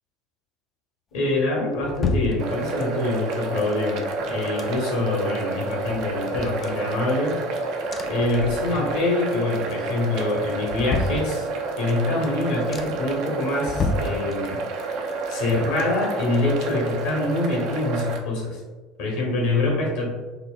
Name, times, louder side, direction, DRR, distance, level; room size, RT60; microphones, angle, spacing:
voice 1, 1.1-7.4 8.1-11.5 11.8-14.6 15.3-18.6 19.0-20.1, left 2 dB, 65° left, -1 dB, 0.9 m, -25 dB
sound 1, 1.3-3.0 3.7-5.2 5.5-5.6 5.9-7.5 7.9-9.1 9.4-9.9 10.3-11.8 12.3-12.4 12.7-13.2 13.6-14.8 15.1-16.9 17.2-17.3, left 3 dB, 35° left, 0.3 m, -32 dB
sound 2, 2.4-18.2, right 3 dB, 55° right, 0.4 m, -29 dB
4.0 x 2.1 x 2.3 m, 1.3 s
figure-of-eight pair, 70°, 0 cm